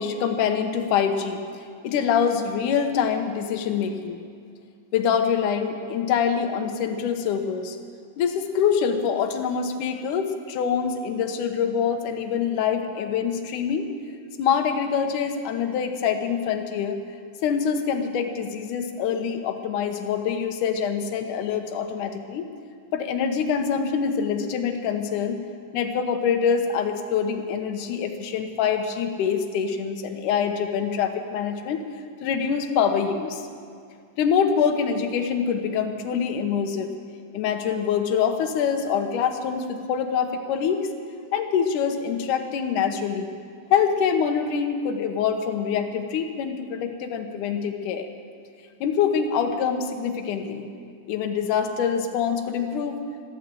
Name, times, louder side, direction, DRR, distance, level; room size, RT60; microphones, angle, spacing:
voice 1, 0.0-4.2 4.9-7.8 8.2-13.9 14.4-17.0 17.4-22.5 22.9-25.4 25.7-31.9 32.2-33.4 34.2-36.9 37.3-40.8 41.3-43.3 43.7-48.1 48.8-50.7 51.1-53.0, left 7 dB, 70° left, 5 dB, 2.5 m, -25 dB
14.5 x 12.5 x 7.7 m, 2.2 s
omnidirectional pair, 3.9 m